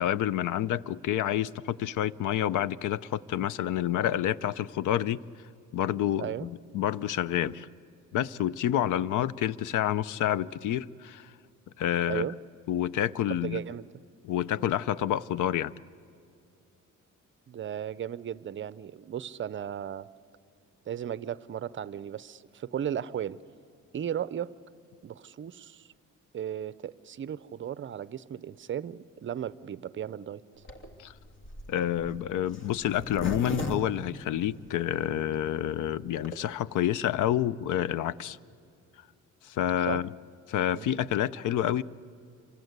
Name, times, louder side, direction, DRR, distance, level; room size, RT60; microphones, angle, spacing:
voice 1, 0.0-5.2 5.7-7.7 8.1-11.3 11.8-12.3 12.7-13.6 14.2-15.7 31.0-31.1 31.7-38.4 39.4-40.1 40.5-41.8, left 11 dB, 75° left, 0.6 m, -28 dB
voice 2, 12.1-12.4 13.3-13.9 17.5-20.1 20.9-23.4 23.9-24.5 25.0-25.9 26.3-30.4 39.9-40.0 40.7-40.9, right 9 dB, 40° right, 0.6 m, -35 dB
Zipper (clothing), 30.6-34.9 35.4-35.5 35.7-35.8 36.0-36.4, left 2 dB, 40° left, 2.2 m, -37 dB
27.5 x 24.5 x 8.1 m
cardioid pair, 130°, 31 cm